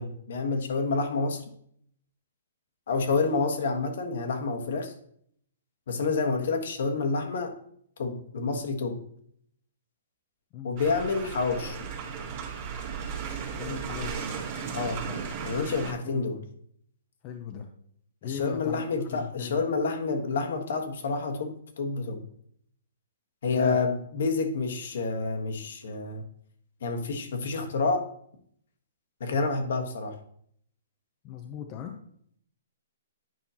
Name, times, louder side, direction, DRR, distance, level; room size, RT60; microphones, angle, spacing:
voice 1, 0.0-1.4 2.9-4.9 5.9-7.5 8.0-9.0 10.6-11.8 14.7-15.1 15.4-16.4 18.2-22.2 23.4-26.2 26.8-28.1 29.2-30.2, left 4 dB, 60° left, 5 dB, 1.3 m, -28 dB
sound 1, 10.8-15.9, right 6 dB, 30° right, 1.7 m, -35 dB
voice 2, 13.5-14.3 16.0-16.4 17.2-17.7 18.2-19.6 23.5-23.8 31.2-32.0, left 8 dB, 25° left, 4 dB, 0.6 m, -38 dB
9.3 x 5.6 x 2.8 m, 0.64 s
hypercardioid pair, 170°, 0 cm